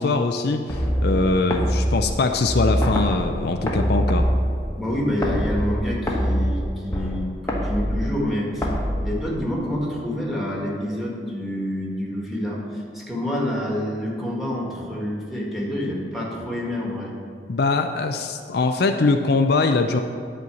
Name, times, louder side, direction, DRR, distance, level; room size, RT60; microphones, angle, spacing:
voice 1, 0.0-4.3 17.5-20.0, left 3 dB, 60° left, 6 dB, 0.5 m, -22 dB
sound 1, 0.7-9.7, equal, 15° left, 1.2 m, -25 dB
voice 2, 4.8-8.8 9.0-17.1, equal, ahead, -4 dB, 1.8 m, -27 dB
11.0 x 4.6 x 7.0 m, 2.3 s
head